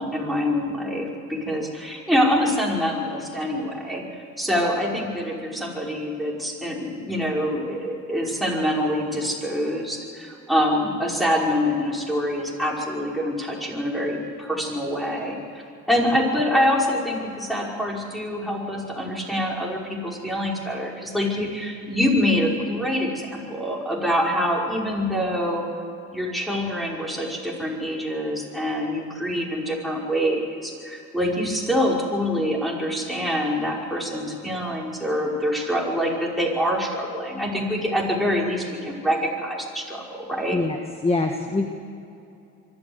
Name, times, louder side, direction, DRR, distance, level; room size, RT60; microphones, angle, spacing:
voice 1, 0.0-4.0 4.4-15.6 15.9-25.7 26.1-40.6, equal, ahead, -2 dB, 5.5 m, -25 dB
voice 2, 41.0-41.7, left 3 dB, 20° left, 4 dB, 1.6 m, -23 dB
24.0 x 13.5 x 8.1 m, 2.6 s
cardioid pair, 90°, 30 cm